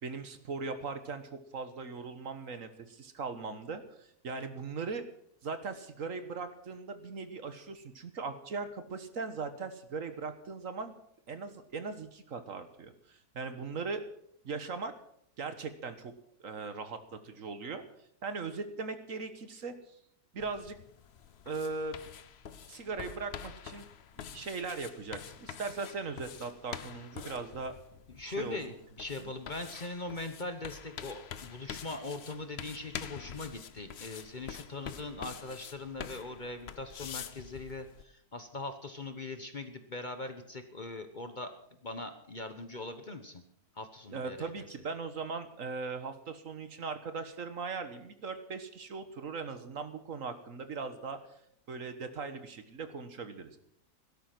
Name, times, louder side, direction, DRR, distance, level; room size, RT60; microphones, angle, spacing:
voice 1, 0.0-5.0 5.4-11.0 11.3-14.0 14.4-14.9 15.4-16.1 16.4-17.8 18.2-19.7 20.3-20.8 21.4-22.0 22.7-23.9 24.3-27.7 28.3-28.6 29.2-29.3 44.1-51.2 51.7-53.6, right 4 dB, 60° right, 10 dB, 1.6 m, -39 dB
sound 1, 20.4-38.0, left 8 dB, 50° left, 0.9 m, -46 dB
voice 2, 28.1-41.5 41.8-43.4 43.7-44.7, left 2 dB, 35° left, 8 dB, 1.2 m, -41 dB
17.0 x 12.5 x 6.0 m, 0.70 s
omnidirectional pair, 1.6 m